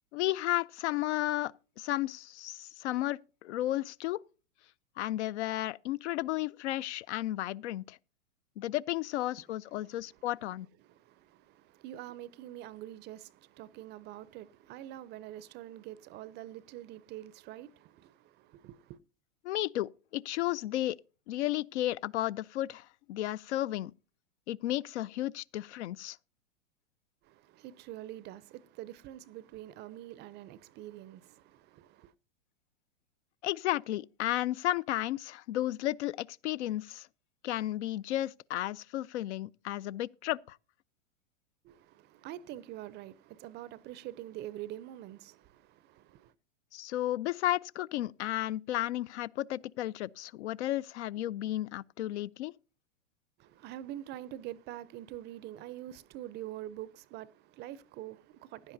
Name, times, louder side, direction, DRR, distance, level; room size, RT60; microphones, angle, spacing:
voice 1, 0.1-4.2 5.0-8.0 8.6-10.7 19.4-21.0 21.3-23.9 24.5-26.2 33.4-37.1 37.4-40.6 46.7-52.5, left 14 dB, 65° left, 0.5 m, -33 dB
voice 2, 9.7-10.2 10.8-19.0 27.2-32.1 41.6-46.3 53.4-58.7, right 13 dB, 30° right, 0.5 m, -45 dB
16.0 x 10.5 x 2.6 m
hypercardioid pair, 115°, 37 cm